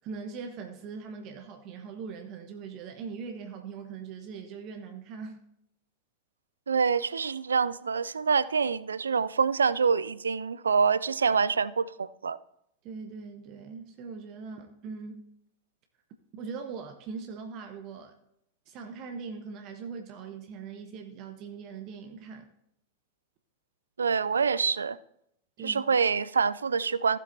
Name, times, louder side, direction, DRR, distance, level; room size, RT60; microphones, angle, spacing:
voice 1, 0.0-5.4 12.8-15.2 16.3-18.2 18.7-22.5 25.6-25.8, right 5 dB, 40° right, 0.9 m, -41 dB
voice 2, 6.7-12.4 24.0-25.0 25.6-27.2, right 5 dB, 70° right, 0.3 m, -26 dB
15.5 x 7.5 x 2.7 m
figure-of-eight pair, 90°, 0 cm